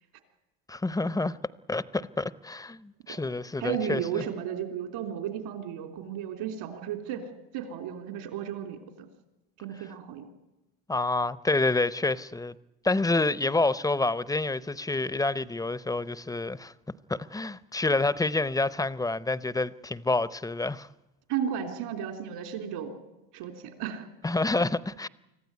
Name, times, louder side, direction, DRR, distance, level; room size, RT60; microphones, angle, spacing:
voice 1, 0.7-1.4 1.7-4.2 10.9-12.5 12.8-16.7 17.1-20.9 24.2-25.1, left 2 dB, 10° left, 0.7 m, -28 dB
voice 2, 3.6-7.2 7.5-9.1 9.6-10.3 21.3-22.9 23.3-24.1, right 9 dB, 75° right, 3.4 m, -34 dB
25.0 x 14.5 x 9.5 m
supercardioid pair, 85°, 41 cm